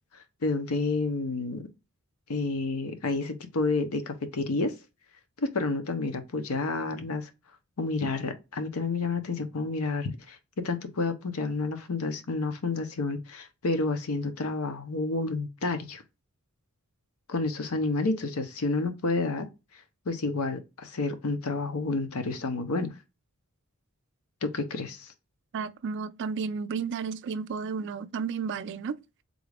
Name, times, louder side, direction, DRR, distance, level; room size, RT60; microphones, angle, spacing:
voice 1, 0.4-1.6 2.3-4.7 5.4-7.3 7.8-10.4 10.6-16.0 17.3-19.5 20.1-22.9 24.4-25.1, left 3 dB, 80° left, 0.7 m, -30 dB
voice 2, 25.5-29.0, right 5 dB, 55° right, 0.3 m, -32 dB
3.7 x 2.4 x 3.3 m
head